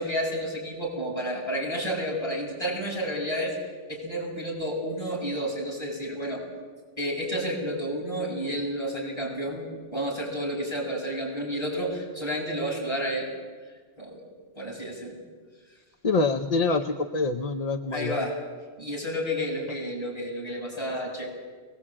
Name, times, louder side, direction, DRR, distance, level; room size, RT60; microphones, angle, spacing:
voice 1, 0.0-3.5 3.9-6.4 7.0-13.3 14.0-14.2 14.5-15.2 17.9-18.4 18.8-21.4, equal, 20° left, -4 dB, 7.9 m, -31 dB
voice 2, 16.0-18.2, left 3 dB, 40° left, 6 dB, 0.8 m, -25 dB
22.5 x 19.5 x 8.8 m, 1.5 s
omnidirectional pair, 1.2 m